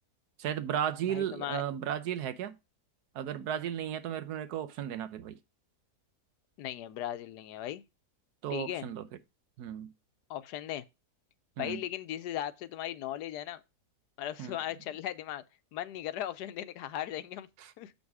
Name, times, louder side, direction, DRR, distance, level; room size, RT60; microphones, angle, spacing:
voice 1, 0.4-2.5 3.1-5.4 8.4-9.1 9.6-9.9 11.6-11.8 14.4-14.6 17.6-17.7, right 10 dB, 80° right, 1.3 m, -34 dB
voice 2, 1.1-1.6 6.6-7.8 8.5-8.9 10.3-10.8 11.6-13.6 14.2-15.4 15.7-17.5 17.8-17.9, left 12 dB, 85° left, 1.2 m, -37 dB
7.2 x 5.3 x 4.7 m
omnidirectional pair, 1.7 m